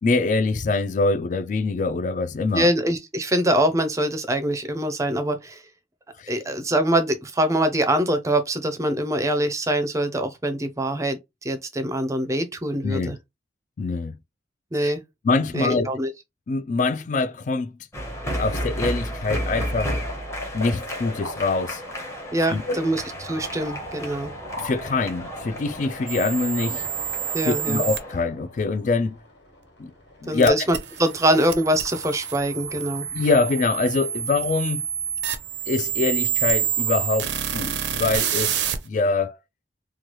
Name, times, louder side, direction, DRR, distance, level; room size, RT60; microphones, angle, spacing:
voice 1, 0.0-2.7 6.2-6.3 12.8-13.1 13.8-14.2 14.7-14.9 15.2-15.9 16.5-17.7 18.2-20.0 20.5-21.8 22.5-22.8 24.6-26.8 27.5-29.2 29.8-29.9 30.2-30.6 33.1-34.8 35.7-39.4, left 3 dB, 45° left, 0.3 m, -24 dB
voice 2, 2.5-5.6 6.3-13.2 14.7-15.0 15.5-16.1 22.3-24.3 27.3-27.9 30.3-33.1, right 1 dB, 15° right, 0.5 m, -24 dB
sound 1, 17.9-28.2, equal, 15° left, 0.8 m, -33 dB
sound 2, 19.7-37.1, left 1 dB, 75° left, 1.8 m, -42 dB
sound 3, 26.1-28.0 30.4-38.8, right 10 dB, 65° right, 0.5 m, -28 dB
3.1 x 2.2 x 2.9 m
head